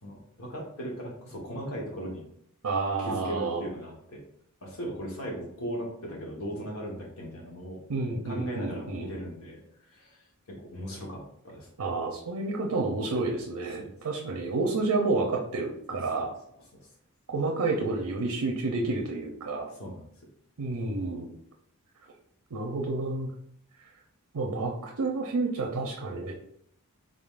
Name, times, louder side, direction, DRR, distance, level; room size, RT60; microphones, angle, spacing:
voice 1, 0.0-2.2 2.8-4.2 4.6-7.8 8.2-11.7 13.8-13.9 15.9-16.0 16.7-16.9 19.7-20.0, equal, 65° left, -1 dB, 1.2 m, -38 dB
voice 2, 2.6-3.6 7.9-9.1 11.8-16.3 17.3-19.7 20.6-21.3 22.5-23.3 24.3-26.3, right 3 dB, 85° right, 1 dB, 0.6 m, -30 dB
3.8 x 3.7 x 2.4 m, 0.70 s
head